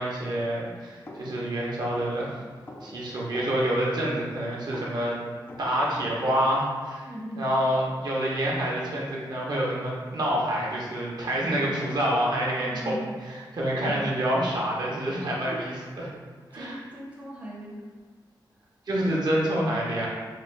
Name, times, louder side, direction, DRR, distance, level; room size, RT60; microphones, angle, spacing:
voice 1, 0.0-2.4 2.8-5.2 5.6-7.1 7.4-16.1 16.5-16.8 18.9-20.1, right 1 dB, 60° right, -4 dB, 0.8 m, -27 dB
sound 1, 1.0-6.8, left 1 dB, 25° left, 0.4 m, -45 dB
voice 2, 7.0-7.5 12.6-13.0 15.3-15.6 16.5-17.8 18.6-18.7, right 1 dB, 15° right, -5 dB, 0.6 m, -39 dB
4.0 x 2.3 x 3.3 m, 1.5 s
wide cardioid pair, 145°, 8 cm